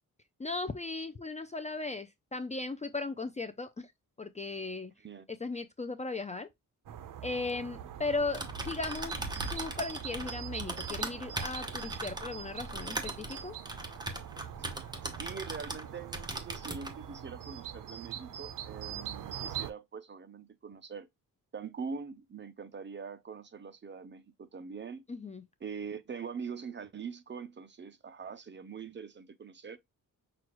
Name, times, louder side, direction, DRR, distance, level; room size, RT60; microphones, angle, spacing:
voice 1, 0.4-3.9 4.2-4.9 5.3-6.5 7.2-13.6 25.1-25.4, left 3 dB, 20° left, 0.4 m, -37 dB
sound 1, 6.9-19.7, right 10 dB, 70° right, 0.6 m, -43 dB
Typing, 8.2-15.9 16.1-16.9, right 2 dB, 10° right, 0.9 m, -39 dB
voice 2, 15.0-21.1 21.5-25.0 25.6-29.8, right 6 dB, 35° right, 0.6 m, -43 dB
6.1 x 2.3 x 3.0 m
cardioid pair, 115°, 34 cm